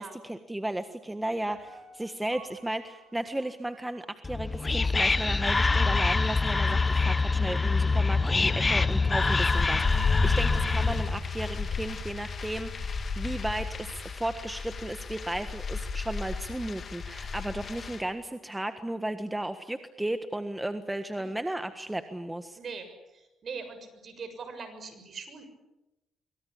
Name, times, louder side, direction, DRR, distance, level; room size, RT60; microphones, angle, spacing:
voice 1, 0.0-22.6, right 1 dB, 10° right, 8 dB, 1.5 m, -34 dB
Piano, 1.5-4.6 5.0-5.1, right 5 dB, 75° right, 6.2 m, -53 dB
Whispering, 4.2-11.2, left 3 dB, 25° left, 0.9 m, -25 dB
sound 1, 9.3-18.0, left 4 dB, 45° left, 2.9 m, -33 dB
voice 2, 22.6-25.4, right 5 dB, 50° right, 9 dB, 6.8 m, -42 dB
25.0 x 24.5 x 8.6 m, 0.99 s
cardioid pair, 90°, 0 cm